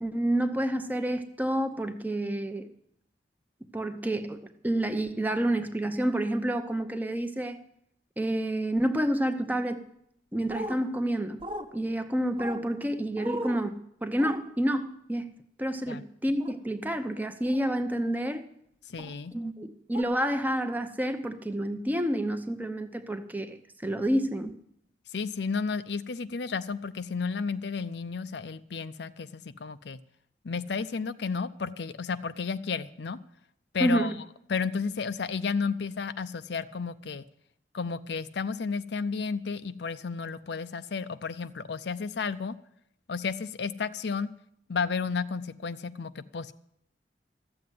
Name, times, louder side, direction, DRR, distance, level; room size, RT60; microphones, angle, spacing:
voice 1, 0.0-2.7 3.7-7.6 8.2-9.8 10.3-11.4 11.7-13.7 14.0-15.3 15.6-18.4 19.3-24.5 33.8-34.1, right 1 dB, 10° right, 0.8 m, -29 dB
sound 1, 10.5-10.8 11.4-11.7 12.4-12.6 13.2-13.6 14.2-14.4 16.4-16.6 17.4-17.7 19.0-19.1 19.9-20.0, right 1 dB, 30° right, 1.1 m, -36 dB
voice 2, 18.9-19.3 25.1-30.0 30.4-33.2 33.7-34.1 34.5-37.3 37.7-42.5 43.1-44.3 44.7-46.5, left 5 dB, 70° left, 0.5 m, -32 dB
13.5 x 7.8 x 9.3 m
head